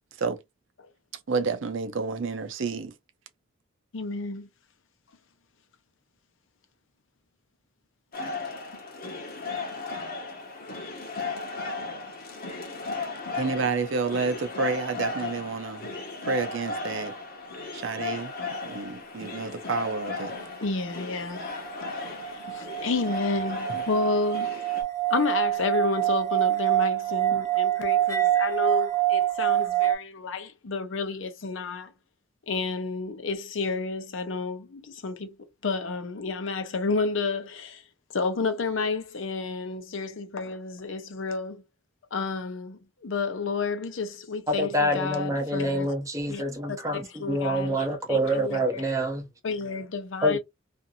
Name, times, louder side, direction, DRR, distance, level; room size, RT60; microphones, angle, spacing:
voice 1, 1.3-2.9 13.3-15.9 16.2-17.1 17.7-18.3 18.6-20.3, right 4 dB, 75° right, 0.6 m, -29 dB
voice 2, 3.9-4.5 20.6-21.5 21.9-24.6 25.1-31.9 32.5-37.8 38.1-41.6 42.1-45.9 46.3-46.4 46.7-48.9 49.4-50.4, left 4 dB, 80° left, 0.7 m, -31 dB
sound 1, 8.1-24.8, left 3 dB, 50° left, 1.0 m, -36 dB
sound 2, 21.6-30.0, right 14 dB, 15° left, 0.7 m, -26 dB
voice 3, 44.5-49.3 50.2-50.4, equal, 15° right, 0.7 m, -26 dB
2.5 x 2.5 x 2.6 m
head